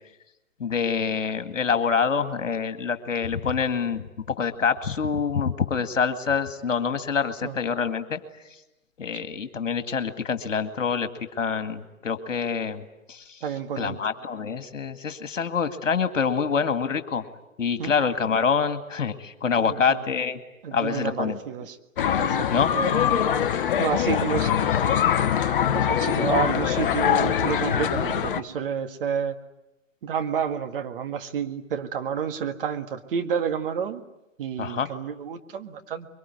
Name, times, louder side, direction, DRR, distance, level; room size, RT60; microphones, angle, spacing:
voice 1, 0.6-4.0 4.4-8.2 9.0-11.1 11.4-12.8 13.1-13.4 13.8-17.2 17.6-20.4 20.7-21.4 22.5-22.7 24.1-24.2 34.6-34.9, left 6 dB, 65° left, 10 dB, 2.2 m, -26 dB
voice 2, 13.4-14.0 17.8-17.9 19.6-20.0 20.6-21.8 22.2-22.5 22.7-24.7 25.7-29.4 30.0-34.0 34.4-36.1, right 7 dB, 40° right, 6 dB, 1.9 m, -30 dB
sound 1, 22.0-28.4, left 9 dB, 40° left, 1.0 m, -23 dB
24.5 x 23.5 x 9.5 m, 0.91 s
figure-of-eight pair, 125°, 41 cm